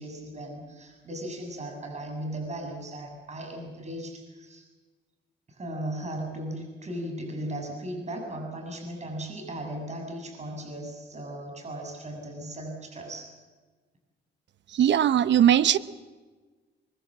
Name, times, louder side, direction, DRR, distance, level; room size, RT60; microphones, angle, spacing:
voice 1, 0.0-4.6 5.5-13.3, right 1 dB, 35° right, 3 dB, 7.0 m, -37 dB
voice 2, 14.7-15.8, right 10 dB, 65° right, 15 dB, 1.0 m, -20 dB
23.5 x 23.0 x 7.5 m, 1.3 s
cardioid pair, 90°, 20 cm